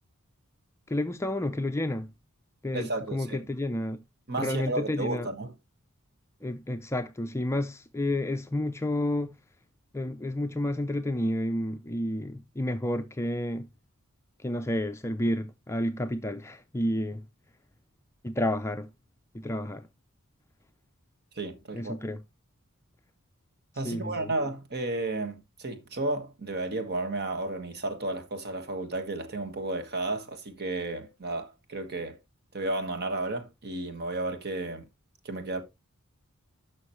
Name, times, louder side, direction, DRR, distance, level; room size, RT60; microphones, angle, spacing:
voice 1, 0.9-2.1 2.6-4.0 4.4-5.3 6.4-9.3 9.9-13.7 14.4-17.2 18.2-18.9 19.3-19.9 21.7-22.2 23.8-24.3, left 1 dB, 10° left, 0.5 m, -30 dB
voice 2, 2.7-3.4 4.3-5.5 21.4-21.9 23.8-32.2 32.5-34.8 35.2-35.6, right 2 dB, 50° right, 1.5 m, -33 dB
11.5 x 6.3 x 3.1 m
head